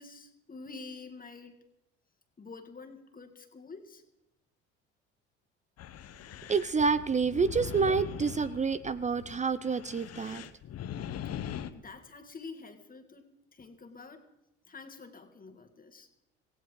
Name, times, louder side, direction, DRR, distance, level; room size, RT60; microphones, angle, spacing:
voice 1, 0.0-1.6 2.4-4.0 11.7-14.3 14.7-16.1, left 4 dB, 25° left, 5 dB, 2.0 m, -47 dB
sound 1, 5.8-11.7, left 9 dB, 50° left, 1.0 m, -41 dB
voice 2, 6.5-10.4, right 5 dB, 20° right, 15 dB, 0.6 m, -28 dB
18.0 x 16.0 x 3.8 m, 0.94 s
hypercardioid pair, 70°, 33 cm